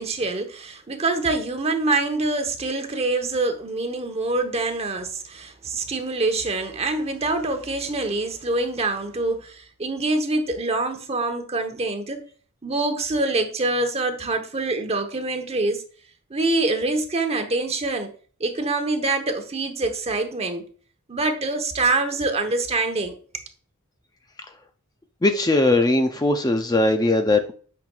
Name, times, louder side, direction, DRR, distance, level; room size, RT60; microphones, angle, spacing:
voice 1, 0.0-12.2 12.6-15.8 16.3-18.1 18.4-20.6 21.1-23.1, right 2 dB, 30° right, 0.9 m, -25 dB
voice 2, 25.2-27.5, left 2 dB, 20° left, 0.5 m, -19 dB
8.9 x 5.9 x 2.3 m
head